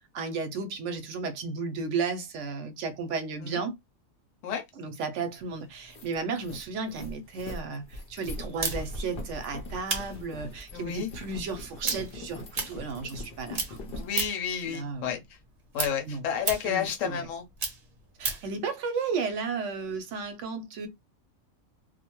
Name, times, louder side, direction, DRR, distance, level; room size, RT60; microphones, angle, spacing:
voice 1, 0.1-3.8 4.8-13.8 14.6-15.1 16.1-16.2 16.6-17.3 18.2-20.9, right 4 dB, 70° right, 0.8 m, -34 dB
sound 1, 5.3-5.4 5.7-14.1, left 1 dB, 55° left, 0.7 m, -41 dB
sound 2, 8.6-13.3 13.5-14.5 14.9-18.5, right 3 dB, 40° right, 0.7 m, -34 dB
voice 2, 10.7-11.1 14.0-15.2 15.7-17.4, left 8 dB, 70° left, 1.1 m, -31 dB
2.5 x 2.1 x 2.9 m
omnidirectional pair, 1.4 m